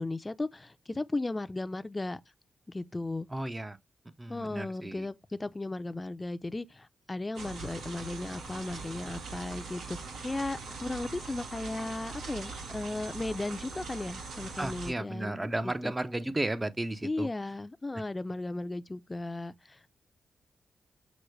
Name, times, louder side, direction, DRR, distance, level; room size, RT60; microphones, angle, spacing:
voice 1, 0.0-2.2 2.7-3.3 4.3-10.0 10.2-15.9 17.0-19.8, left 2 dB, 25° left, 0.5 m, -36 dB
voice 2, 3.3-3.8 4.2-5.1 14.6-17.3, right 1 dB, 20° right, 0.5 m, -34 dB
sound 1, 7.3-14.9, right 4 dB, 85° right, 1.3 m, -42 dB
6.1 x 2.1 x 3.2 m
cardioid pair, 55°, 0 cm